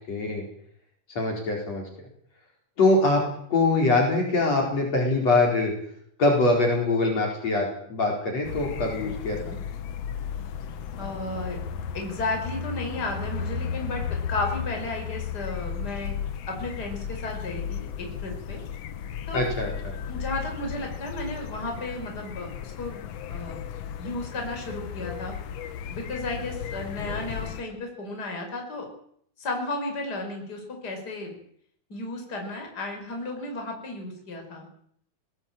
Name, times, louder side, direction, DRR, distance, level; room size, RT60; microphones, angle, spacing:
voice 1, 0.1-0.4 1.2-1.8 2.8-3.2 3.5-5.7 6.2-9.6 19.3-19.9, left 2 dB, 45° left, 0 dB, 5.6 m, -23 dB
sound 1, 8.4-27.6, left 7 dB, 70° left, 1.6 m, -35 dB
voice 2, 11.0-11.6 11.9-16.2 16.5-18.6 19.3-19.5 20.1-23.0 23.3-23.6 24.0-25.3 25.9-28.9 29.4-31.4 31.9-34.7, left 2 dB, 25° left, 2 dB, 5.5 m, -33 dB
20.5 x 18.0 x 9.0 m, 0.67 s
omnidirectional pair, 4.3 m